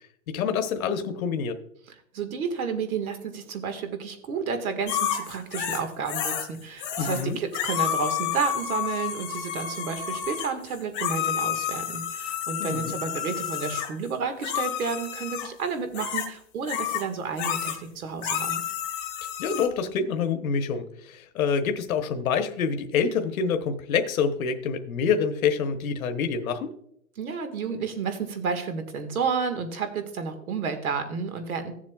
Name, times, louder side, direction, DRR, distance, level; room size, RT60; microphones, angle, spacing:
voice 1, 0.3-1.6 7.0-7.4 12.6-13.0 19.4-26.7, left 6 dB, 75° left, 7 dB, 1.1 m, -26 dB
voice 2, 2.1-18.6 27.2-31.7, right 5 dB, 85° right, 8 dB, 1.8 m, -31 dB
sound 1, 4.9-6.5 6.8-7.3 7.5-13.9 14.4-15.5 15.9-16.3 16.7-17.0 17.4-17.8 18.2-19.7, left 10 dB, 20° left, 1.0 m, -30 dB
15.5 x 7.4 x 2.3 m, 0.72 s
hypercardioid pair, 160°, 42 cm